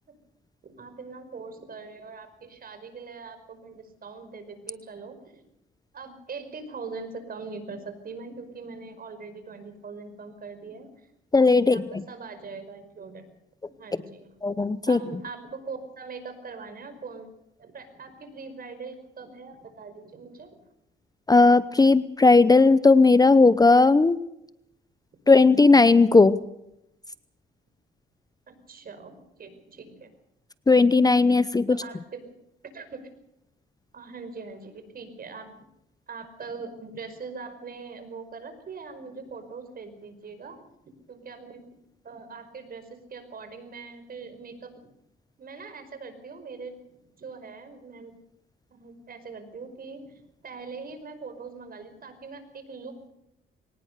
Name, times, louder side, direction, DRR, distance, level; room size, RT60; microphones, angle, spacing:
voice 1, 0.6-5.4 5.9-11.1 11.6-13.2 13.6-14.3 14.9-17.3 17.6-20.6 28.5-30.1 31.7-32.2 32.7-33.1 33.9-35.5 36.1-40.6 41.1-41.7 42.0-44.9 45.4-48.1 48.7-53.1, right 4 dB, 50° right, 9 dB, 5.3 m, -42 dB
voice 2, 11.3-12.0 14.4-15.0 21.3-24.2 25.3-26.4 30.7-31.8, left 3 dB, 20° left, 15 dB, 0.8 m, -17 dB
23.5 x 19.0 x 6.7 m, 0.83 s
cardioid pair, 90°, 20 cm